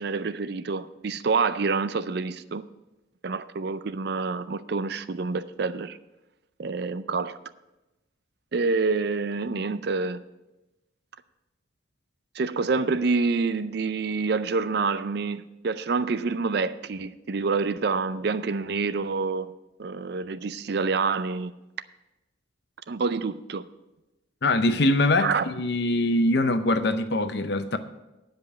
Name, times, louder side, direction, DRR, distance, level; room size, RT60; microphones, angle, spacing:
voice 1, 0.0-2.6 3.2-6.0 6.6-7.4 8.5-10.2 12.3-19.5 19.8-21.5 22.9-23.7 25.2-25.5, right 4 dB, 50° right, 0.4 m, -27 dB
voice 2, 24.4-27.8, left 2 dB, 55° left, 0.7 m, -23 dB
10.0 x 5.3 x 8.2 m
head